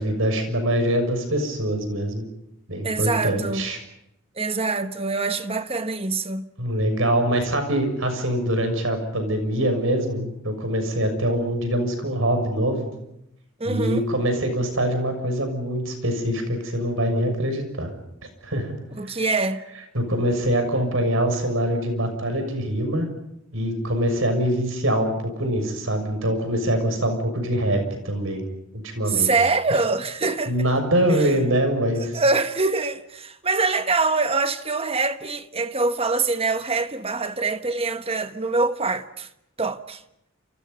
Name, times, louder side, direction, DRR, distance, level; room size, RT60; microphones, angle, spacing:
voice 1, 0.0-2.2 2.7-3.8 6.6-12.9 13.6-17.9 18.4-18.7 19.9-23.1 23.5-28.4 28.8-29.3 30.5-32.2, right 1 dB, 65° right, 6.5 m, -24 dB
voice 2, 2.8-3.7 4.4-6.5 13.6-14.1 19.0-19.6 29.1-30.5 31.1-31.3 32.0-39.3 39.6-40.0, right 3 dB, 30° right, 1.3 m, -24 dB
29.5 x 28.5 x 5.5 m
head